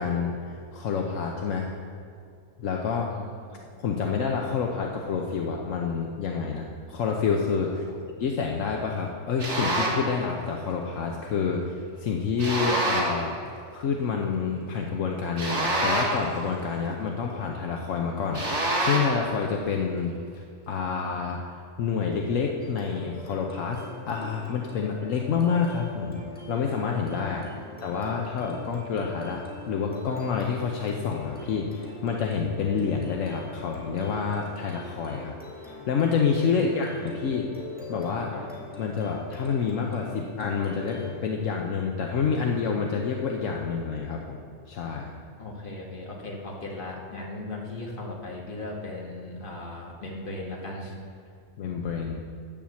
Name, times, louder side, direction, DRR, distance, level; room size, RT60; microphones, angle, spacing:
voice 1, 0.0-1.7 2.6-3.1 3.8-7.8 8.2-13.3 13.7-21.5 21.8-26.2 26.5-27.4 27.8-35.3 35.6-37.5 37.9-38.3 38.8-44.4 44.7-45.1 51.6-52.2, left 5 dB, 75° left, 1 dB, 1.1 m, -28 dB
voice 2, 3.0-3.6 7.7-8.0 27.2-27.8 36.5-37.1 38.3-38.5 45.4-50.9, left 2 dB, 40° left, -2 dB, 1.8 m, -38 dB
sound 1, 9.4-10.1 12.4-13.2 15.4-16.3 18.3-19.2, right 1 dB, 60° right, 2.0 m, -26 dB
sound 2, 22.6-41.2, left 2 dB, 5° left, 1.8 m, -43 dB
8.8 x 7.2 x 7.0 m, 2.3 s
omnidirectional pair, 1.4 m